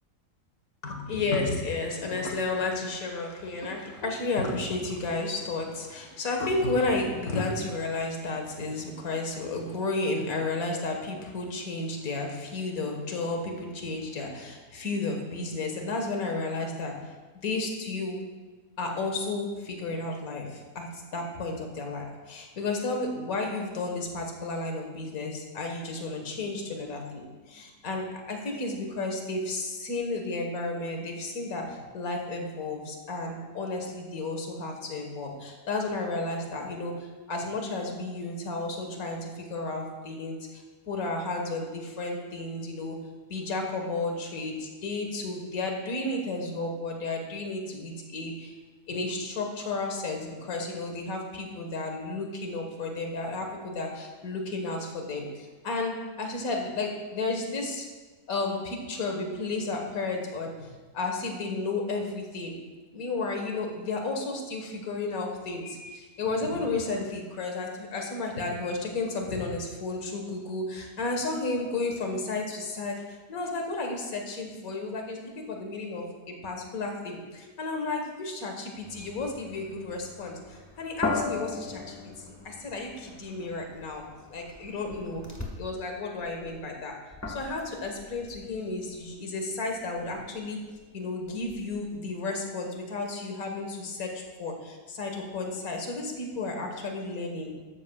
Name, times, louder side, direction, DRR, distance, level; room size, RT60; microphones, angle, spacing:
voice 1, 0.8-16.9 17.3-18.2 18.8-43.0 43.3-48.5 48.9-57.9 58.3-62.6 62.9-82.0 82.3-85.2 85.6-87.0 87.3-90.6 90.9-97.5, left 3 dB, 60° left, 2 dB, 1.9 m, -32 dB
sound 1, 78.8-85.7 86.1-91.9, left 3 dB, 10° left, 1.3 m, -39 dB
13.0 x 13.0 x 2.3 m, 1.3 s
omnidirectional pair, 1.8 m